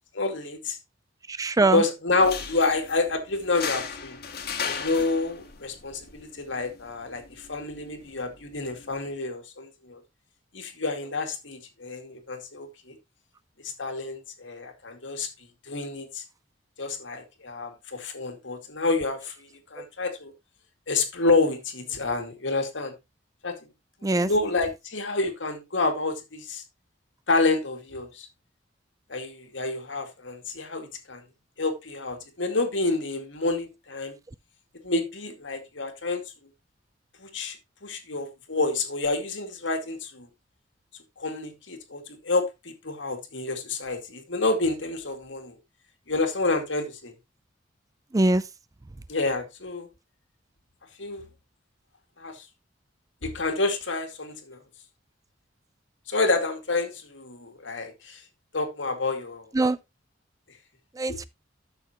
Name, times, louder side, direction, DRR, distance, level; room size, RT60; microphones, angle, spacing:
voice 1, 0.1-0.8 1.7-4.2 4.6-7.2 7.5-10.0 10.5-13.0 13.6-15.3 15.7-16.2 16.8-19.3 19.7-20.3 20.9-22.9 23.4-23.6 24.0-26.6 27.3-28.3 29.1-31.2 31.6-34.1 34.8-36.2 37.2-37.6 37.8-40.3 41.2-45.5 46.1-47.1 49.1-49.9 51.0-51.2 52.2-52.4 53.2-54.6 56.1-58.2 58.5-59.5 61.1-61.2, left 3 dB, 80° left, 2.3 m, -28 dB
voice 2, 1.3-1.8 19.8-19.9 24.0-24.3 48.1-48.4 59.5-59.8 61.0-61.2, right 2 dB, 20° right, 0.4 m, -22 dB
sound 1, 2.1-9.1, left 6 dB, 60° left, 1.8 m, -38 dB
12.5 x 6.6 x 3.0 m
head